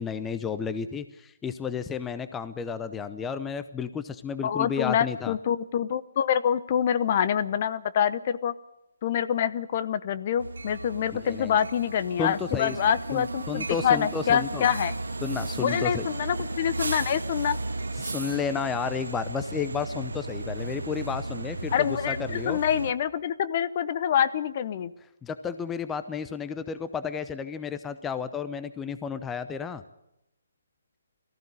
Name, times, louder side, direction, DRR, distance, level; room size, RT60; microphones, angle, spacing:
voice 1, 0.0-5.4 11.2-11.5 12.2-12.8 13.1-14.7 15.2-16.1 18.0-22.6 25.2-29.8, left 6 dB, 10° left, 11 dB, 0.7 m, -32 dB
voice 2, 4.4-8.5 9.0-14.9 15.6-17.6 21.7-24.9, left 9 dB, 40° left, 14 dB, 0.8 m, -26 dB
sound 1, 10.4-22.9, right 2 dB, 75° right, 1.0 m, -34 dB
19.0 x 14.5 x 9.7 m, 0.88 s
figure-of-eight pair, 140°, 0 cm